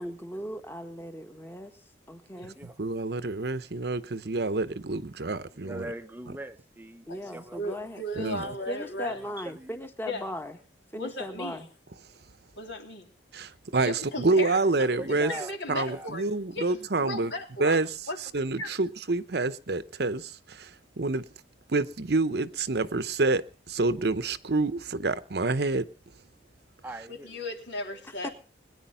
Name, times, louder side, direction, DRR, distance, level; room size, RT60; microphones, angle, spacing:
voice 1, 0.0-1.7 2.1-2.6 7.1-8.4 8.7-10.6 10.9-11.7 28.2-28.3, equal, 10° left, 1.5 m, -38 dB
voice 2, 2.8-5.8 8.2-8.4 13.3-15.3 15.7-17.3 17.6-17.9 18.3-20.7 21.0-21.2 21.7-25.9, right 3 dB, 60° right, 0.8 m, -27 dB
voice 3, 5.5-7.6 8.4-8.7 9.0-9.8 14.9-16.1 26.8-27.4 27.9-28.0, right 1 dB, 10° right, 0.7 m, -42 dB
voice 4, 7.1-9.2 10.0-10.3 10.9-11.6 12.6-13.1 13.8-16.3 16.5-17.8 18.1-18.7 27.1-28.3, left 1 dB, 70° left, 3.6 m, -36 dB
21.5 x 9.9 x 5.6 m
head